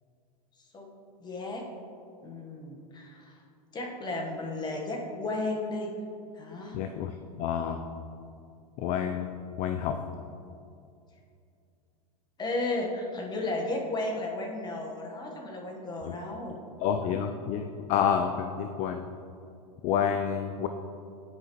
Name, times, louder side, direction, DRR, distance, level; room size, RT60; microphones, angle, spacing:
voice 1, 1.2-1.7 2.2-3.4 3.7-5.9 6.3-6.8 12.4-16.6, left 2 dB, 20° left, 1 dB, 1.1 m, -34 dB
voice 2, 6.7-7.8 8.8-9.3 9.6-10.0 16.0-16.1 16.8-19.0 19.8-20.7, left 8 dB, 40° left, 7 dB, 0.4 m, -29 dB
9.7 x 4.8 x 3.0 m, 2.5 s
hypercardioid pair, 105°, 20 cm